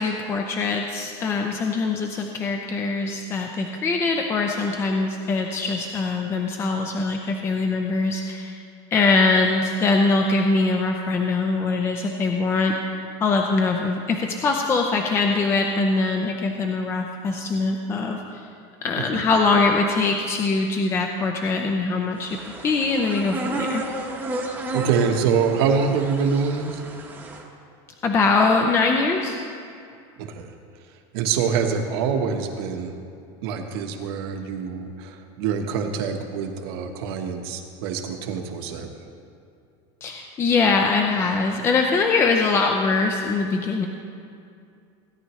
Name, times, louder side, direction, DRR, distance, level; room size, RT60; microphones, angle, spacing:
voice 1, 0.0-8.6 8.9-12.8 13.2-18.4 18.8-22.4 22.6-23.8 28.0-29.4 40.0-43.9, left 3 dB, 20° left, 2 dB, 0.5 m, -22 dB
sound 1, 22.2-27.4, right 2 dB, 15° right, 0.9 m, -32 dB
voice 2, 24.7-26.8 30.2-30.5 31.1-33.0 33.4-38.9, right 6 dB, 65° right, 4 dB, 1.2 m, -25 dB
17.0 x 10.0 x 3.1 m, 2.4 s
supercardioid pair, 170°, 14 cm